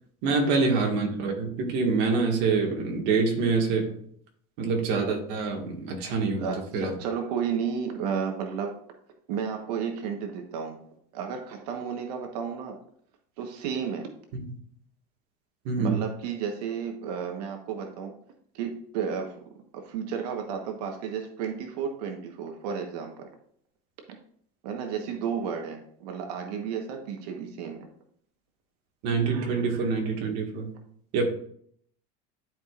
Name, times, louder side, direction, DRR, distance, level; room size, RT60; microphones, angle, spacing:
voice 1, 0.2-3.9 4.6-6.5 6.7-6.9 14.3-14.4 15.6-16.0 29.0-30.7 31.1-31.2, right 4 dB, 55° right, 2 dB, 1.8 m, -26 dB
voice 2, 6.4-8.8 9.3-10.8 11.1-12.8 13.4-14.1 15.8-18.1 18.5-23.3 24.6-27.9 29.3-30.0, right 7 dB, 75° right, 4 dB, 1.2 m, -33 dB
11.5 x 4.9 x 2.5 m, 0.64 s
supercardioid pair, 155°, 20 cm